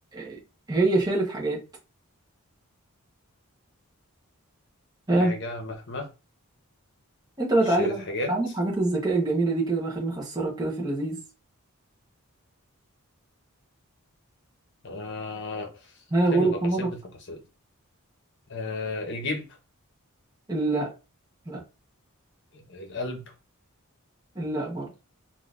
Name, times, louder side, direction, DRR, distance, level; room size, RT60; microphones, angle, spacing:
voice 1, 0.7-1.6 5.1-5.3 7.4-11.2 16.1-16.9 20.5-20.9 21.5-21.6 24.3-24.9, right 2 dB, 15° right, 0.9 m, -25 dB
voice 2, 5.2-6.1 7.6-8.3 14.8-15.9 16.3-17.0 17.3-17.4 18.5-19.5 22.5-23.3, left 2 dB, 55° left, 0.9 m, -33 dB
3.7 x 2.6 x 2.4 m
head